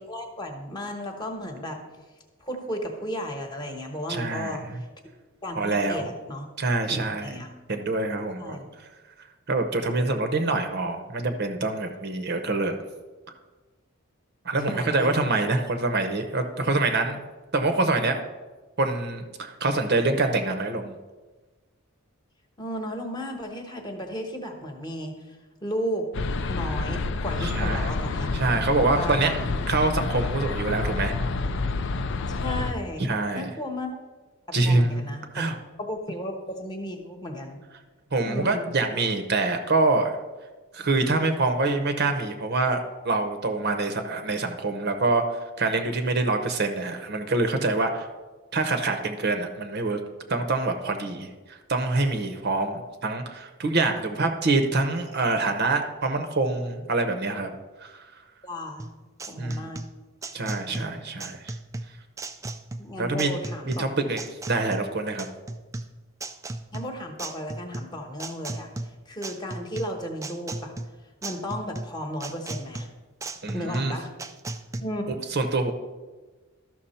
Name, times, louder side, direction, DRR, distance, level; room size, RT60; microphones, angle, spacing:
voice 1, 0.0-1.8 2.4-4.9 5.4-6.5 6.9-7.5 8.4-8.7 14.6-15.1 15.4-15.5 22.6-26.1 26.5-28.3 28.9-29.6 32.3-33.0 33.3-34.0 34.6-37.6 38.2-38.8 58.4-58.9 59.3-59.8 60.5-60.9 62.8-63.9 66.7-68.7 69.1-70.7 71.2-72.9 73.5-74.1 74.8-75.2, equal, 20° left, 3 dB, 1.1 m, -34 dB
voice 2, 4.1-4.6 5.5-6.1 6.6-7.4 7.7-8.6 9.5-12.7 14.4-17.2 17.5-18.2 18.8-20.9 27.4-27.9 28.3-29.3 29.7-31.1 33.0-33.5 34.5-35.1 35.3-35.5 38.1-40.1 40.7-45.2 45.6-48.1 48.5-50.0 50.3-51.3 51.7-57.5 57.8-58.0 59.4-59.7 60.3-61.5 63.0-63.3 63.8-64.2 64.5-65.3 73.4-73.9 75.3-75.7, right 3 dB, 50° right, 7 dB, 0.8 m, -25 dB
sound 1, 26.1-32.7, left 3 dB, 55° left, 0.5 m, -28 dB
sound 2, 58.8-74.8, right 2 dB, 15° right, 0.3 m, -37 dB
12.5 x 6.0 x 4.3 m, 1.3 s
head